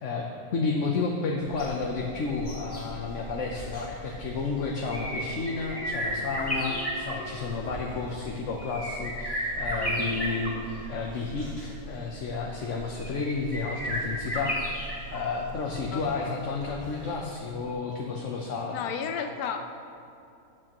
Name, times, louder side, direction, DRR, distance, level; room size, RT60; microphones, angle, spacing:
voice 1, 0.0-18.8, left 4 dB, 60° left, 0 dB, 1.1 m, -31 dB
sound 1, 1.4-17.4 17.7-17.8, equal, 15° left, 1.9 m, -35 dB
sound 2, 5.1-8.1 9.8-11.2, right 1 dB, 35° left, 2.3 m, -44 dB
voice 2, 15.9-16.4 18.7-19.6, left 7 dB, 90° left, 6 dB, 1.1 m, -33 dB
15.0 x 8.5 x 3.0 m, 2.7 s
omnidirectional pair, 1.6 m